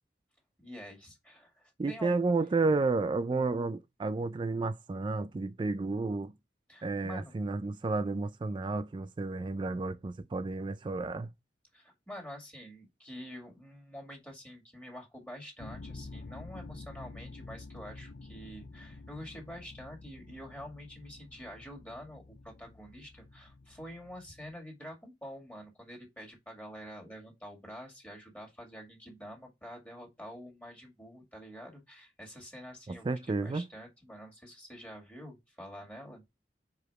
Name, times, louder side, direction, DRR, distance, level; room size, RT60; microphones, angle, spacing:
voice 1, 0.6-2.2 6.7-7.4 11.7-36.2, equal, 10° left, 2.1 m, -47 dB
voice 2, 1.8-6.3 6.8-11.3 32.9-33.6, right 3 dB, 30° right, 0.3 m, -31 dB
sound 1, 15.6-24.6, left 3 dB, 50° left, 0.4 m, -49 dB
4.9 x 4.7 x 4.6 m
head